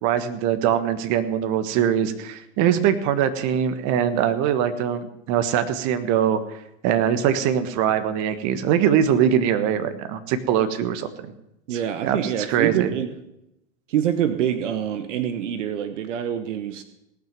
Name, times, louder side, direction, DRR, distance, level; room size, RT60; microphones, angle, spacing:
voice 1, 0.0-6.4 6.8-11.1 12.0-12.2 12.5-12.9, right 9 dB, 50° right, 11 dB, 1.5 m, -22 dB
voice 2, 11.7-13.2 13.9-16.8, right 9 dB, 80° right, 10 dB, 1.1 m, -25 dB
18.5 x 6.3 x 7.5 m, 0.85 s
hypercardioid pair, 105°, 37 cm